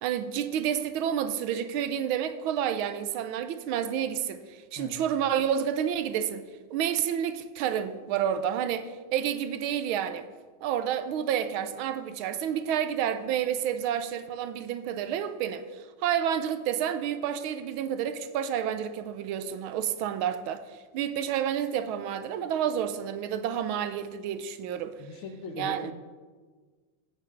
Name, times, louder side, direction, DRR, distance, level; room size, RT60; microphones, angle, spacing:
voice 1, 0.0-6.4 6.7-10.3 10.6-20.6 20.9-25.0 25.6-25.9, right 9 dB, 85° right, 1.5 m, -29 dB
voice 2, 4.8-5.1 25.0-25.9, left 3 dB, 85° left, 1.9 m, -40 dB
11.0 x 8.8 x 3.9 m
omnidirectional pair, 2.3 m